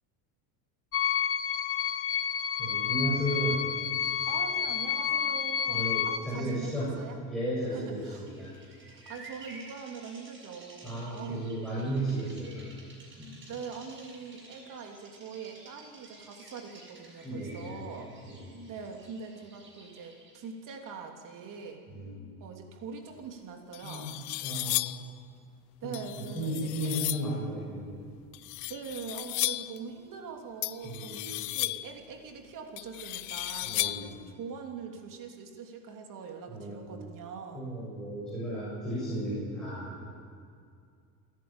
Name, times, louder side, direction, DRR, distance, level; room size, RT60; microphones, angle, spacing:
sound 1, 0.9-6.2, left 8 dB, 30° left, 1.2 m, -29 dB
voice 1, 2.6-3.7 5.7-6.9 7.3-8.5 10.8-12.7 13.2-13.4 17.2-17.8 18.2-18.7 21.9-22.3 23.8-24.8 25.8-28.0 30.8-31.4 33.6-34.1 36.5-37.0 37.5-40.1, right 1 dB, ahead, -9 dB, 7.3 m, -34 dB
voice 2, 4.2-7.2 7.7-8.3 8.9-11.4 13.5-18.2 18.7-21.8 22.4-24.2 25.8-27.2 28.7-37.7, right 5 dB, 45° right, 3 dB, 3.1 m, -43 dB
Bird vocalization bird call bird song, 7.8-20.5, right 2 dB, 25° right, 6.4 m, -53 dB
sound 2, 23.2-23.3 23.7-25.1 25.9-27.3 28.3-29.8 30.6-32.0 32.8-34.2, left 21 dB, 80° left, 0.7 m, -34 dB
28.5 x 11.5 x 9.0 m, 2.3 s
cardioid pair, 130°, 44 cm